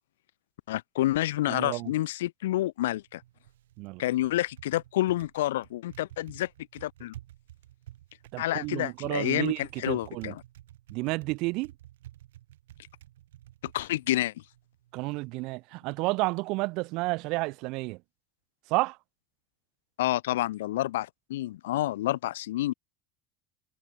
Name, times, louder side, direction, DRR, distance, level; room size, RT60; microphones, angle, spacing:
voice 1, 0.7-3.2 4.0-7.1 8.4-10.4 13.7-14.3 20.0-22.7, left 15 dB, 80° left, 1.0 m, -29 dB
voice 2, 1.5-1.9 3.8-4.0 8.3-10.3 10.9-11.7 14.9-18.0 18.7-19.0, right 24 dB, 65° right, 0.5 m, -31 dB
Typing, 2.8-15.2, right 13 dB, 85° right, 6.0 m, -52 dB
hypercardioid pair, 85°, 0 cm